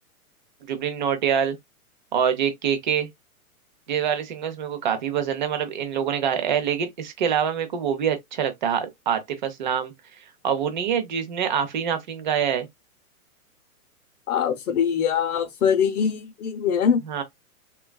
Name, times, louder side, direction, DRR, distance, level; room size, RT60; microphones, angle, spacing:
voice 1, 0.7-1.6 2.1-3.1 3.9-9.9 10.4-12.7 17.1-17.2, right 8 dB, 35° right, 0.5 m, -25 dB
voice 2, 14.3-17.0, left 7 dB, 70° left, 0.8 m, -23 dB
3.4 x 2.3 x 2.2 m
hypercardioid pair, 160°, 44 cm